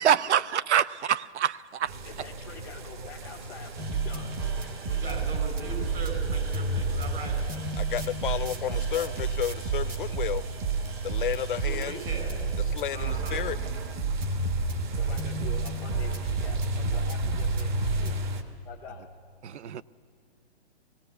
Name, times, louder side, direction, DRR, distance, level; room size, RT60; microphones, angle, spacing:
voice 1, 0.0-1.9 19.4-19.8, right 9 dB, 80° right, 19 dB, 0.6 m, -25 dB
sound 1, 1.9-18.4, right 2 dB, 45° right, 1.3 m, -36 dB
voice 2, 2.0-4.3 8.5-9.1 13.2-13.4 14.9-18.2 18.6-19.1, left 7 dB, 5° left, -1 dB, 0.5 m, -45 dB
sound 2, 3.8-18.1, right 4 dB, 20° right, 0.9 m, -31 dB
voice 3, 4.9-7.4 11.6-12.3 12.9-13.4, right 2 dB, 60° right, 4 dB, 5.4 m, -39 dB
voice 4, 7.8-10.4 11.0-12.0 12.7-13.6, left 10 dB, 50° left, 15 dB, 0.6 m, -32 dB
20.0 x 16.5 x 8.1 m, 2.3 s
hypercardioid pair, 160°, 34 cm